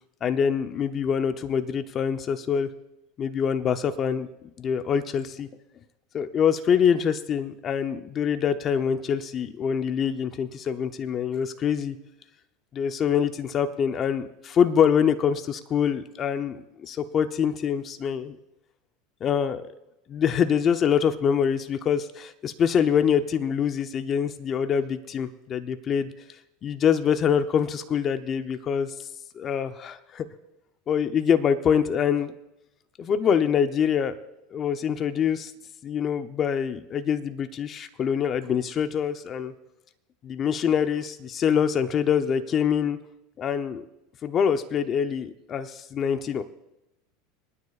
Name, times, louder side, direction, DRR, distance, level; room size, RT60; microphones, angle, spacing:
voice 1, 0.2-2.7 3.2-4.3 4.6-5.5 6.1-12.0 12.7-18.4 19.2-19.7 20.1-26.1 26.6-28.9 29.4-30.3 30.9-32.3 33.0-34.2 34.5-35.5 35.8-39.5 40.2-43.0 43.4-43.8 44.2-46.4, left 7 dB, 35° left, 9 dB, 0.8 m, -25 dB
29.0 x 9.7 x 2.5 m, 0.92 s
supercardioid pair, 120°, 0 cm